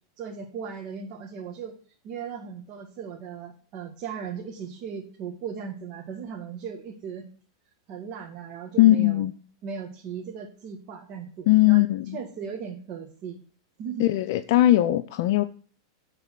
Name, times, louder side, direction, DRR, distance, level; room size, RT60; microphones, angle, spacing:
voice 1, 0.2-1.7 2.0-7.2 7.9-9.2 9.6-11.9 12.1-13.4 13.8-14.1, right 6 dB, 45° right, 1.8 m, -37 dB
voice 2, 8.8-9.3 11.5-12.2 14.0-15.4, left 15 dB, 60° left, 0.5 m, -19 dB
9.8 x 4.1 x 7.4 m
hypercardioid pair, 115°, 2 cm